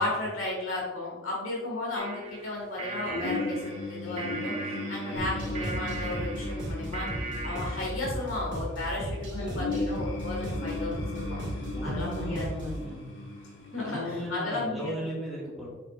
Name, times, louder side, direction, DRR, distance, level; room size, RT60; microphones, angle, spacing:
voice 1, 0.0-7.1 7.4-11.4 11.8-12.7 13.7-15.0, left 2 dB, 85° left, -3 dB, 1.8 m, -34 dB
sound 1, 1.9-8.0, right 3 dB, 30° right, 0.6 m, -39 dB
sound 2, 3.1-14.3, left 2 dB, 65° left, 1.3 m, -37 dB
voice 2, 5.1-5.7 11.7-13.0 13.7-15.7, equal, ahead, -6 dB, 1.8 m, -37 dB
sound 3, 5.2-12.8, equal, 60° right, 1.9 m, -36 dB
6.3 x 6.0 x 2.5 m, 1.2 s
head